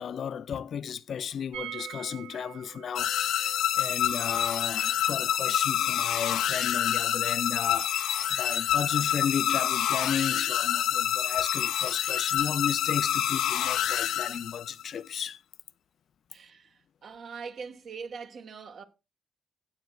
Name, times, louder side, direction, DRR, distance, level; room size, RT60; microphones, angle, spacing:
voice 1, 0.0-15.4, left 8 dB, 55° left, 0.4 m, -34 dB
sound 1, 1.5-7.3 7.6-7.7 7.9-8.0, right 12 dB, 80° right, 1.4 m, -46 dB
sound 2, 3.0-14.8, left 11 dB, 90° left, 0.8 m, -27 dB
voice 2, 16.3-18.8, right 5 dB, 55° right, 1.4 m, -42 dB
17.0 x 7.7 x 2.3 m
cardioid pair, 135°, 0 cm